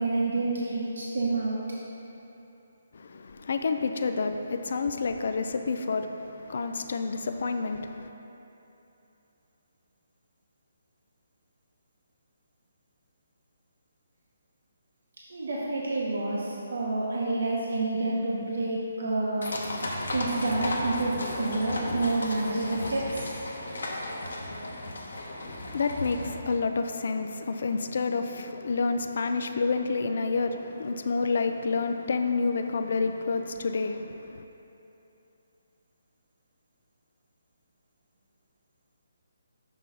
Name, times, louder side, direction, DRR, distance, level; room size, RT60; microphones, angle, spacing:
voice 1, 0.0-1.6 15.3-19.5 20.1-23.4, right 2 dB, 75° right, -5 dB, 0.9 m, -28 dB
voice 2, 2.9-8.1 25.4-34.4, left 4 dB, 55° left, 7 dB, 0.3 m, -29 dB
sound 1, 19.4-26.3, left 1 dB, 90° left, 1.0 m, -34 dB
6.0 x 3.9 x 5.7 m, 2.9 s
hypercardioid pair, 170°, 0 cm